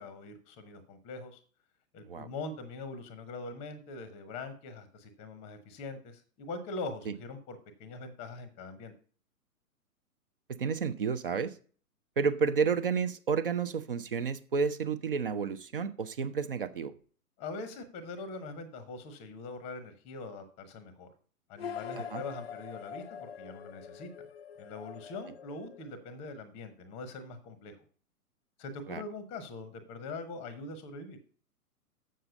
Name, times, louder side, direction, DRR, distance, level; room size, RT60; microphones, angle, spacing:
voice 1, 0.0-1.4 1.9-8.9 17.4-21.1 21.5-24.1 24.6-27.8 28.6-31.2, left 3 dB, 15° left, 12 dB, 0.8 m, -42 dB
voice 2, 10.6-11.5 12.2-16.9 22.1-22.2 28.9-29.0, right 5 dB, 40° right, 12 dB, 0.6 m, -31 dB
sound 1, 21.6-26.4, left 8 dB, 45° left, 0.4 m, -44 dB
7.5 x 6.7 x 5.2 m, 0.41 s
figure-of-eight pair, 120°, 45 cm